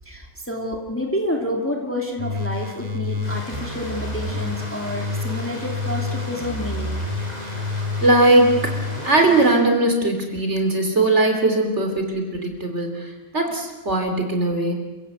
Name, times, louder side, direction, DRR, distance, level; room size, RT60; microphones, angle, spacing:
voice 1, 0.0-7.0, left 1 dB, 10° left, 1 dB, 2.6 m, -29 dB
sound 1, 2.2-9.6, left 3 dB, 25° right, 2.0 m, -29 dB
Stream, 3.2-9.6, equal, 25° left, 5.9 m, -37 dB
voice 2, 8.0-8.7 9.0-14.7, right 2 dB, 45° right, 4 dB, 3.7 m, -19 dB
29.0 x 15.5 x 8.2 m, 1.2 s
omnidirectional pair, 1.6 m